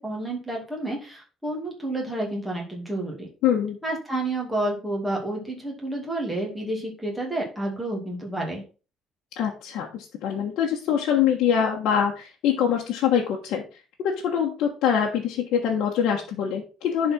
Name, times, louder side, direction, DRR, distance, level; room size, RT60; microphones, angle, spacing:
voice 1, 0.0-3.3 3.8-8.6, right 1 dB, 5° right, -2 dB, 2.4 m, -30 dB
voice 2, 3.4-3.8 9.4-13.6 14.0-17.1, left 8 dB, 60° left, -1 dB, 1.4 m, -24 dB
11.0 x 4.3 x 4.4 m, 0.34 s
cardioid pair, 170°, 0 cm